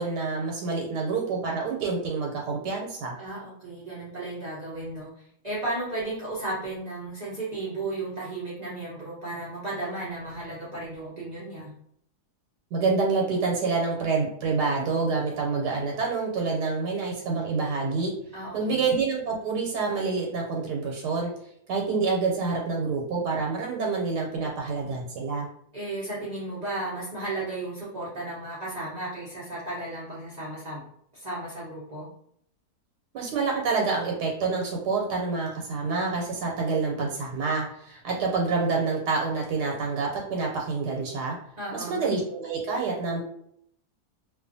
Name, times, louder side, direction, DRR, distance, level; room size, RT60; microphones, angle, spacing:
voice 1, 0.0-3.2 12.7-18.1 18.5-21.3 21.7-25.5 33.1-41.4 41.7-43.2, right 4 dB, 90° right, -1 dB, 1.2 m, -27 dB
voice 2, 3.2-11.7 18.3-18.8 25.7-30.8 31.1-32.1 41.6-42.0, right 2 dB, 50° right, -8 dB, 0.5 m, -34 dB
2.5 x 2.4 x 2.5 m, 0.70 s
omnidirectional pair, 1.7 m